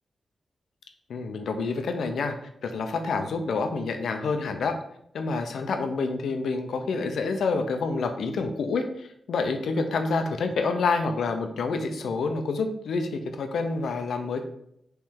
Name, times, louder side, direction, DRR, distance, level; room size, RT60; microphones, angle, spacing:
voice 1, 1.1-2.4 2.6-4.8 5.1-14.4, left 4 dB, 85° left, 6 dB, 0.5 m, -28 dB
4.5 x 3.2 x 3.6 m, 0.73 s
wide cardioid pair, 150°, 0 cm